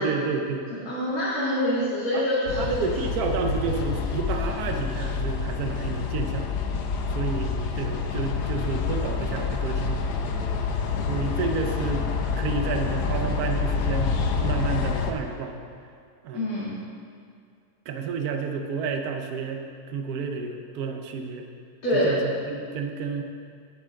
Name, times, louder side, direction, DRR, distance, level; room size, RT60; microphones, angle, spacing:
voice 1, 0.0-0.6 2.1-2.2 2.6-6.6 7.1-10.1 11.1-12.1 12.4-15.6 16.2-16.8 17.9-21.5 21.9-23.2, right 5 dB, 75° right, 4 dB, 1.3 m, -30 dB
voice 2, 0.7-2.6 16.3-16.7 21.8-22.2, left 1 dB, 65° left, -10 dB, 2.5 m, -25 dB
sound 1, 2.5-15.1, left 5 dB, 80° left, 1.3 m, -27 dB
10.5 x 8.9 x 3.6 m, 2.2 s
omnidirectional pair, 1.7 m